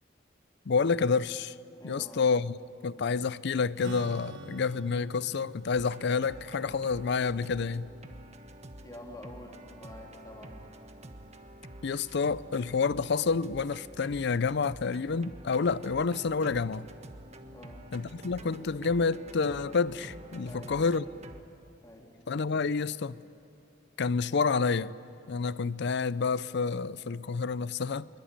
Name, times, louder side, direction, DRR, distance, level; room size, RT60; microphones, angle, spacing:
voice 1, 0.7-1.5 1.8-2.6 2.8-7.9 11.8-16.9 17.9-21.0 22.3-23.2 24.0-24.9 25.3-28.1, left 5 dB, 65° left, 0.5 m, -29 dB
voice 2, 1.8-2.3 8.8-10.6 17.5-17.9 20.5-20.8 21.8-22.2, left 1 dB, 20° left, 3.2 m, -47 dB
Strum, 3.8-9.4, right 3 dB, 75° right, 1.1 m, -48 dB
sound 1, 5.8-21.4, right 1 dB, 35° right, 1.3 m, -48 dB
23.0 x 22.5 x 8.8 m
head